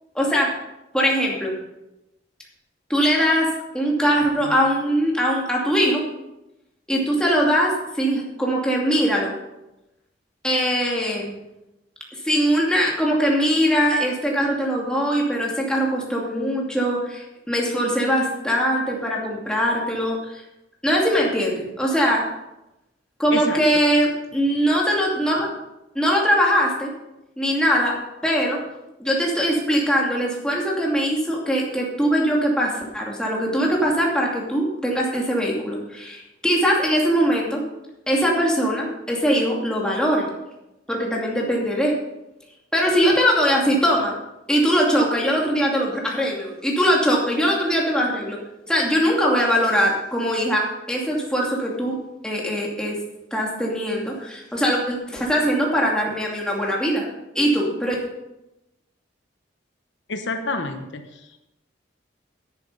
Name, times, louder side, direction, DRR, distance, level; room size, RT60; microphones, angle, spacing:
voice 1, 0.1-0.5 0.9-1.6 2.9-6.0 6.9-9.3 10.4-11.4 12.2-20.4 20.8-22.2 23.2-25.5 25.9-26.9 27.4-27.9 28.2-28.6 29.0-37.6 38.1-40.3 40.9-42.0 42.7-44.1 44.5-48.4 48.7-52.0 52.2-53.0 53.3-57.1 57.3-57.9, equal, 5° left, -3 dB, 2.5 m, -21 dB
voice 2, 60.1-61.2, left 3 dB, 70° left, 6 dB, 1.1 m, -28 dB
10.5 x 10.5 x 5.4 m, 0.94 s
head